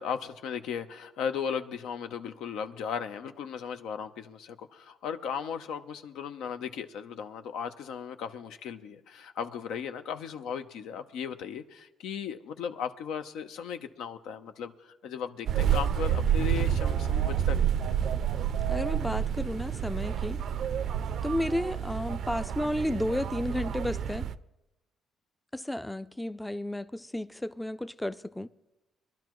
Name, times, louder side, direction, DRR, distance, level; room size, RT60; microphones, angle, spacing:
voice 1, 0.0-17.9, left 7 dB, 85° left, 0.8 m, -36 dB
sound 1, 15.5-24.3, right 9 dB, 65° right, 0.4 m, -29 dB
voice 2, 18.7-20.4 21.2-24.3 25.5-28.5, left 1 dB, 5° left, 0.4 m, -32 dB
22.0 x 12.0 x 3.1 m
cardioid pair, 85°, 0 cm